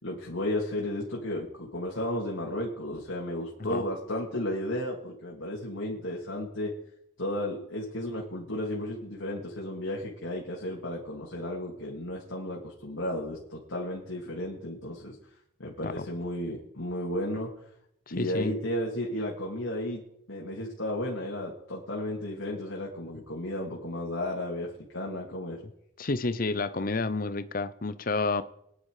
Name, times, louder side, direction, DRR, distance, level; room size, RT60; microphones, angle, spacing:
voice 1, 0.0-6.7 7.2-15.1 15.6-17.5 18.1-20.0 20.3-25.6, left 1 dB, 85° left, 2.7 m, -33 dB
voice 2, 18.2-18.5 26.0-28.4, left 3 dB, 45° left, 0.7 m, -30 dB
23.0 x 10.0 x 4.9 m
head